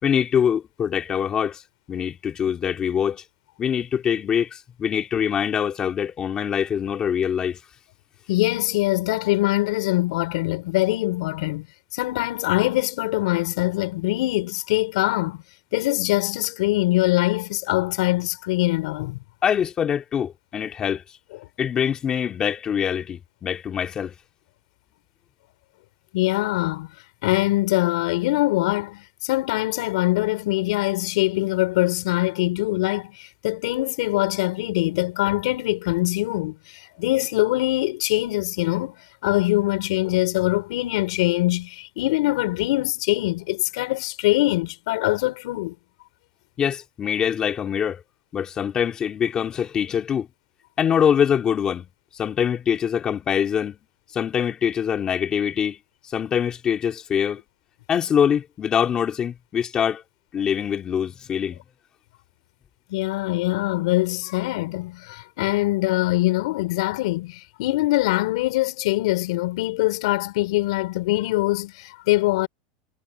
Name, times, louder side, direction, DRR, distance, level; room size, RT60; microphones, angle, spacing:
voice 1, 0.0-1.6 1.9-3.2 3.6-7.6 19.4-21.0 21.6-24.1 46.6-48.0 48.3-50.3 50.8-51.9 52.1-53.8 54.1-55.8 56.0-57.4 57.9-60.0 60.3-61.6, left 8 dB, 25° left, 2.5 m, -24 dB
voice 2, 8.3-11.7 11.9-15.4 15.7-19.2 26.1-26.9 27.2-38.9 39.2-45.7 62.9-72.5, left 18 dB, 70° left, 4.7 m, -23 dB
supercardioid pair, 155°, 3 cm